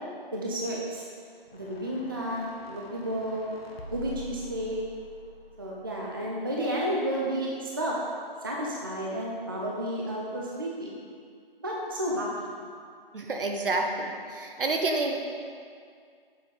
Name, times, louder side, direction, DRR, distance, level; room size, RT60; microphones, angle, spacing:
voice 1, 0.3-1.0 1.5-3.4 3.9-4.8 5.6-8.0 8.4-11.0 11.6-12.5, equal, 25° right, -4 dB, 0.4 m, -31 dB
sound 1, 1.4-6.7, equal, 85° left, 0.9 m, -46 dB
voice 2, 13.1-15.2, right 2 dB, 65° right, 3 dB, 0.9 m, -29 dB
6.8 x 5.0 x 3.6 m, 2.2 s
figure-of-eight pair, 150°, 29 cm